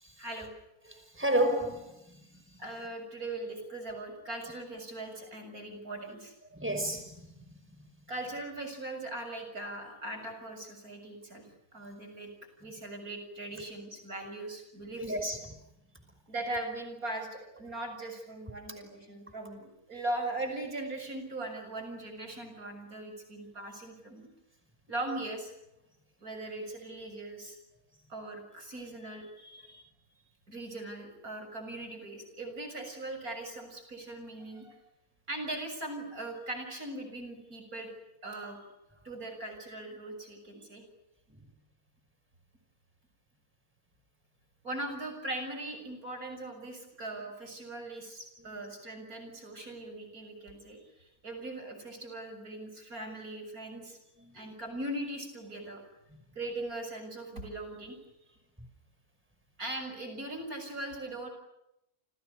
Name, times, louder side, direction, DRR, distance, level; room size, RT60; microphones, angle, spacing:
voice 1, 0.2-0.5 2.6-6.3 8.1-11.5 11.7-12.3 12.6-15.2 16.3-24.3 24.9-25.5 26.2-27.6 28.1-29.8 30.5-34.8 35.3-37.9 38.2-38.6 39.0-40.8 44.6-54.0 54.3-55.8 56.4-58.0 59.6-61.3, right 2 dB, 75° right, 7.4 m, -40 dB
voice 2, 0.9-2.4 6.5-7.4 15.0-15.6 54.2-54.3, right 1 dB, 10° right, 5.6 m, -32 dB
29.5 x 28.5 x 6.6 m
omnidirectional pair, 1.5 m